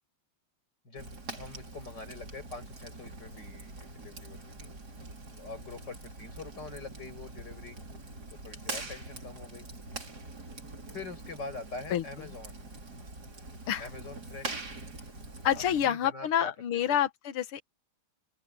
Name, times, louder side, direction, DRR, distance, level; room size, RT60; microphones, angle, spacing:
voice 1, 0.8-4.7 5.3-7.8 8.3-9.7 10.9-12.6 13.8-14.8 15.6-16.5 16.9-17.0, left 3 dB, 50° left, 7.7 m, -44 dB
Fire, 1.0-15.9, right 3 dB, 45° right, 4.3 m, -44 dB
voice 2, 15.4-17.6, left 10 dB, 85° left, 2.0 m, -28 dB
open air
omnidirectional pair, 2.4 m